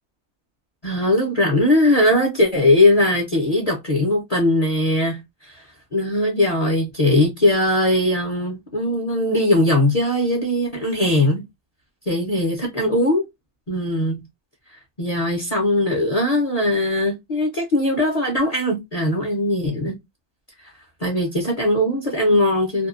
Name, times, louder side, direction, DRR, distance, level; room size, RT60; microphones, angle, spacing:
voice 1, 0.8-11.4 12.1-13.2 13.7-14.2 15.0-20.0 20.6-20.7 21.0-22.9, left 1 dB, 40° left, 0.5 m, -20 dB
2.6 x 2.3 x 2.4 m
omnidirectional pair, 1.5 m